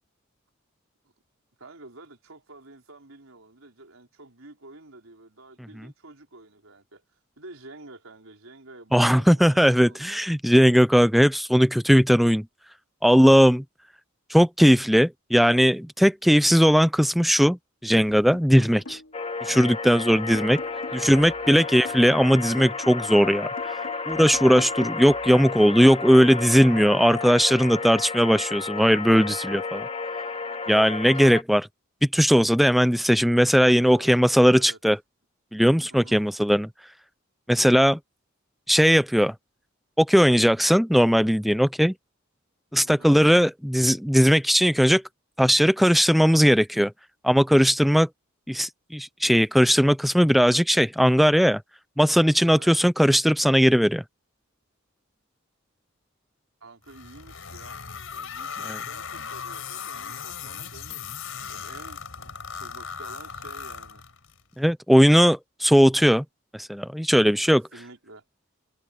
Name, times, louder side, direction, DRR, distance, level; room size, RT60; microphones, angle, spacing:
voice 1, 1.6-7.0 7.4-10.1 18.5-18.8 20.8-21.8 33.8-34.8 35.9-36.2 37.5-37.8 42.8-43.2 52.5-52.7 56.6-57.8 58.1-61.1 61.5-64.0 67.5-68.2, right 2 dB, 85° right, 4.5 m, -48 dB
voice 2, 8.9-12.4 13.0-13.6 14.3-17.6 17.8-19.0 19.4-20.6 21.0-23.5 24.1-29.9 30.7-31.7 32.1-35.0 35.5-36.7 37.5-38.0 38.7-39.3 40.0-41.9 42.7-45.0 45.4-46.9 47.2-48.1 48.5-51.6 52.0-54.0 58.7-58.8 64.6-66.2 66.5-67.6, equal, ahead, 0.4 m, -19 dB
sound 1, 18.1-19.3 19.6-23.1 23.6-26.1, left 1 dB, 65° left, 2.9 m, -45 dB
sound 2, 19.1-31.4, left 4 dB, 30° left, 2.1 m, -32 dB
sound 3, 56.9-64.4, left 7 dB, 85° left, 4.2 m, -37 dB
head